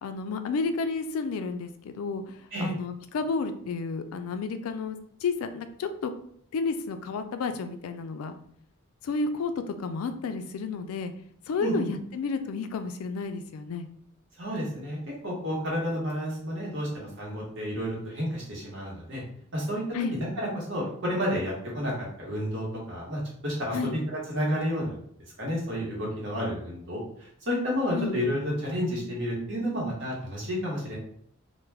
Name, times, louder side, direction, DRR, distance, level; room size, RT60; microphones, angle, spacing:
voice 1, 0.0-6.1 6.5-8.4 9.0-11.1 11.5-13.9 19.9-20.2 23.7-23.9 27.9-28.2, left 4 dB, 90° left, 8 dB, 0.3 m, -31 dB
voice 2, 11.6-11.9 14.4-15.0 15.2-19.2 19.5-19.8 20.4-23.8 24.3-25.0 25.4-31.0, equal, 60° right, -3 dB, 1.0 m, -31 dB
2.2 x 2.1 x 3.2 m, 0.64 s
head